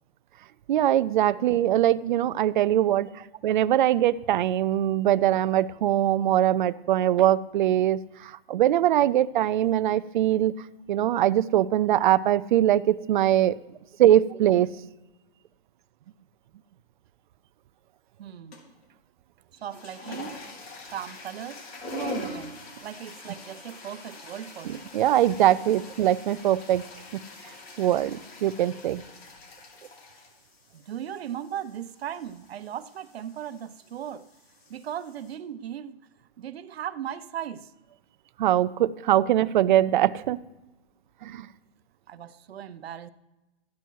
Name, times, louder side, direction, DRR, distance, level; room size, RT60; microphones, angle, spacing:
voice 1, 0.7-3.1 3.4-13.5 14.0-14.7 24.9-26.8 27.1-27.2 27.8-29.0 38.4-40.4 41.2-41.5, right 12 dB, 50° right, 0.5 m, -22 dB
voice 2, 18.2-18.6 19.5-20.4 20.9-24.9 30.7-34.3 34.7-36.0 36.4-37.7 42.1-43.1, right 10 dB, 75° right, 0.8 m, -37 dB
sound 1, 18.5-18.8 19.5-35.3, left 2 dB, 75° left, 4.2 m, -44 dB
14.0 x 9.5 x 4.6 m
hypercardioid pair, 160°, 31 cm